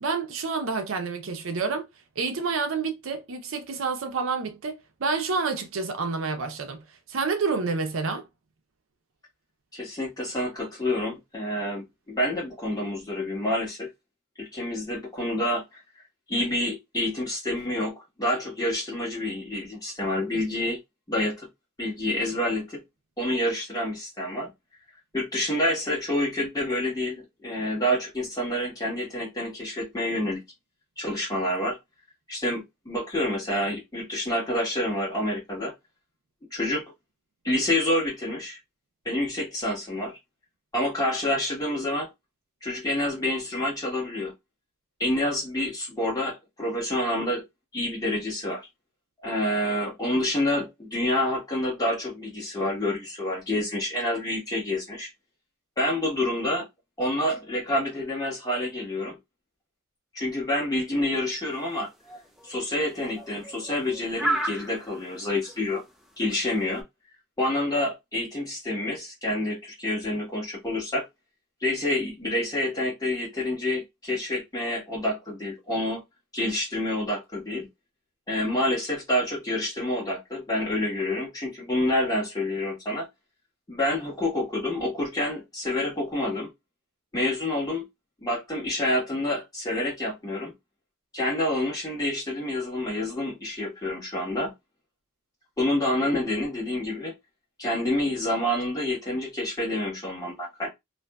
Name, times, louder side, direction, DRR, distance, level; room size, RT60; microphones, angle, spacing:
voice 1, 0.0-1.9 2.2-6.8 7.1-8.2, right 4 dB, 80° right, 0.6 m, -28 dB
voice 2, 9.7-13.9 14.4-15.8 16.3-20.8 21.1-21.5 21.8-22.8 23.2-24.5 25.1-30.4 31.0-31.8 32.3-35.7 36.5-36.9 37.4-38.6 39.0-40.2 40.7-42.1 42.6-44.3 45.0-47.4 47.7-48.6 49.2-55.1 55.8-56.7 57.0-59.2 60.1-61.9 62.4-65.8 66.2-66.8 67.4-71.0 71.6-76.0 76.3-77.7 78.3-83.0 83.7-86.5 87.1-87.8 88.2-90.5 91.1-94.5 95.6-97.1 97.6-100.7, left 1 dB, 20° left, 1.2 m, -28 dB
sound 1, 61.5-66.8, right 1 dB, ahead, 0.3 m, -33 dB
2.5 x 2.5 x 2.2 m
head